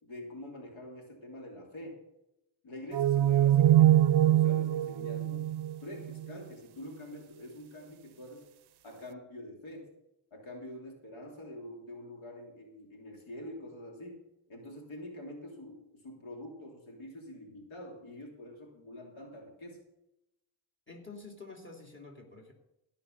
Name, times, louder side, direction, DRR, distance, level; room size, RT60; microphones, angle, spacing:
voice 1, 0.0-2.0 2.6-5.5 5.8-8.5 8.8-9.9 10.3-19.8, left 1 dB, 85° left, 0 dB, 3.0 m, -46 dB
sound 1, 2.9-6.4, right 12 dB, 60° right, 0.5 m, -24 dB
voice 2, 20.9-22.5, left 3 dB, 25° left, 0 dB, 3.0 m, -48 dB
16.0 x 5.6 x 6.5 m, 0.88 s
cardioid pair, 60°, 46 cm